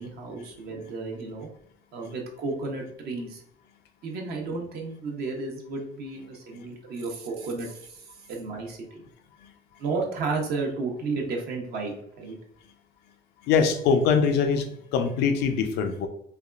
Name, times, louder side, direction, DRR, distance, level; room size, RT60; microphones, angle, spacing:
voice 1, 0.0-1.5 1.9-3.4 4.0-8.0 8.3-9.0 9.8-12.4, right 3 dB, 70° right, 1 dB, 0.8 m, -32 dB
voice 2, 13.5-14.7 14.9-16.1, left 6 dB, 90° left, 7 dB, 0.5 m, -22 dB
3.3 x 2.3 x 2.4 m, 0.69 s
cardioid pair, 110°, 17 cm